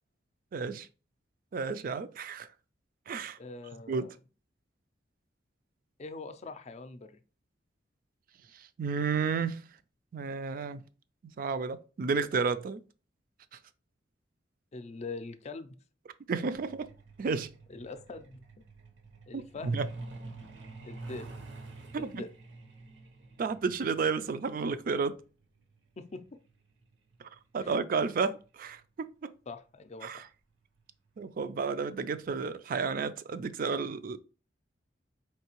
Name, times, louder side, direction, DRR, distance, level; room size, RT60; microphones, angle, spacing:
voice 1, 0.5-0.9 1.5-2.5 3.1-3.4 3.9-4.1 8.8-9.6 10.1-10.8 11.4-12.8 16.3-16.9 17.2-17.5 19.3-19.9 21.9-22.2 23.4-25.2 27.5-29.3 30.0-30.2 31.2-34.2, right 5 dB, 50° right, 0.4 m, -32 dB
voice 2, 3.4-4.1 6.0-7.2 14.7-15.7 17.7-18.6 19.3-19.8 20.8-21.3 21.9-22.3 26.0-26.2 27.6-27.8 29.5-30.3, left 3 dB, 35° left, 0.4 m, -43 dB
Truck, 16.5-28.8 30.1-30.2 30.6-30.8 31.2-31.5 31.8-31.9 32.3-32.4, right 3 dB, 75° right, 0.7 m, -49 dB
4.5 x 3.2 x 2.9 m
head